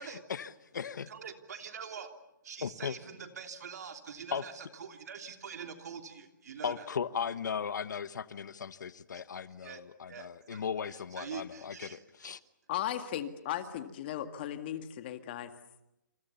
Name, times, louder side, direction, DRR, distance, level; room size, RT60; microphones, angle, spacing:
voice 1, 0.0-1.1 2.6-3.0 4.3-4.4 6.6-12.4, left 7 dB, 65° left, 15 dB, 1.2 m, -37 dB
voice 2, 1.1-2.1 2.4-6.9 9.6-9.8 10.1-12.0, right 6 dB, 55° right, 6 dB, 3.2 m, -45 dB
voice 3, 12.7-15.5, left 11 dB, 30° left, 8 dB, 1.9 m, -36 dB
28.0 x 28.0 x 7.1 m, 0.88 s
hypercardioid pair, 165°, 11 cm